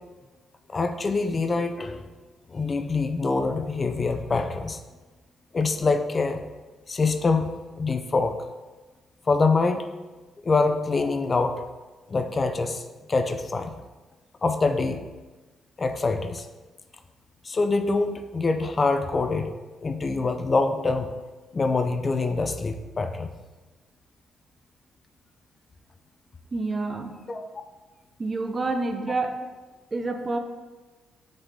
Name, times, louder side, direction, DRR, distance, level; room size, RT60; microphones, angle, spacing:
voice 1, 0.7-2.1 2.5-4.8 5.5-6.4 6.9-7.5 7.8-8.4 9.3-9.9 10.4-11.6 12.1-13.8 14.4-15.1 15.8-16.5 17.4-19.5 19.8-21.1 21.5-23.3 27.3-27.5, left 3 dB, 35° left, 7 dB, 0.4 m, -25 dB
voice 2, 26.5-27.2 28.2-29.4 29.9-30.4, right 3 dB, 30° right, 6 dB, 0.6 m, -28 dB
6.9 x 4.0 x 3.5 m, 1.2 s
cardioid pair, 90°, 0 cm